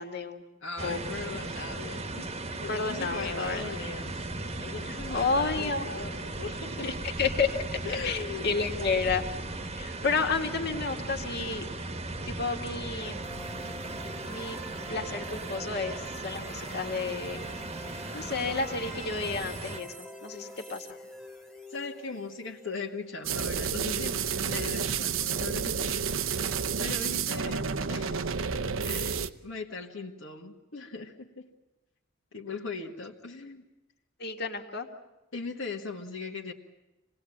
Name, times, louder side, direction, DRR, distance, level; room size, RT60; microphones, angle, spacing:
voice 1, 0.0-0.4 0.8-1.0 2.7-3.6 4.9-5.8 6.8-7.6 8.0-9.2 9.7-11.7 12.3-13.2 14.3-14.6 14.9-17.5 17.8-20.9 34.2-34.9, left 4 dB, 55° left, 3 dB, 2.1 m, -31 dB
voice 2, 0.6-4.3 4.6-6.9 7.9-8.5 21.7-24.2 24.5-25.9 26.8-27.6 27.9-28.3 28.8-31.5 32.3-33.7 35.3-36.5, left 4 dB, 70° left, -1 dB, 1.7 m, -39 dB
sound 1, 0.8-19.8, right 2 dB, 30° right, 1.3 m, -37 dB
sound 2, 13.0-24.8, equal, ahead, 1.6 m, -46 dB
sound 3, 23.2-29.3, right 6 dB, 75° right, 0.8 m, -30 dB
26.5 x 19.0 x 8.7 m, 1.0 s
head